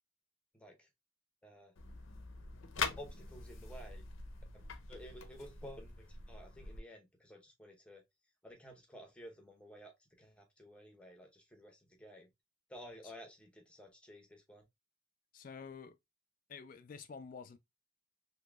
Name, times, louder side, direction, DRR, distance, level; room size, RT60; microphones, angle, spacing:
voice 1, 0.5-0.9 1.4-1.7 2.8-4.0 4.5-8.0 8.4-12.3 12.7-14.6, equal, 5° left, 0.8 m, -53 dB
sound 1, 1.8-6.8, left 5 dB, 90° left, 0.6 m, -44 dB
voice 2, 15.3-16.0 16.5-17.6, left 5 dB, 45° left, 0.3 m, -49 dB
3.7 x 2.8 x 2.2 m
head